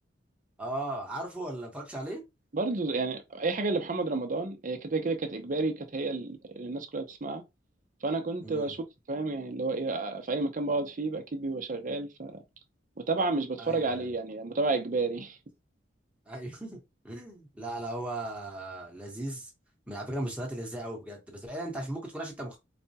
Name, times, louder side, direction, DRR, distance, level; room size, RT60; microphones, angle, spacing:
voice 1, 0.6-2.2 8.4-8.7 13.6-14.1 16.3-16.8 17.0-19.5 19.9-22.6, right 1 dB, 5° right, 1.1 m, -37 dB
voice 2, 2.5-7.4 8.0-12.4 13.1-15.4, right 3 dB, 45° right, 0.7 m, -31 dB
4.2 x 2.2 x 2.8 m
head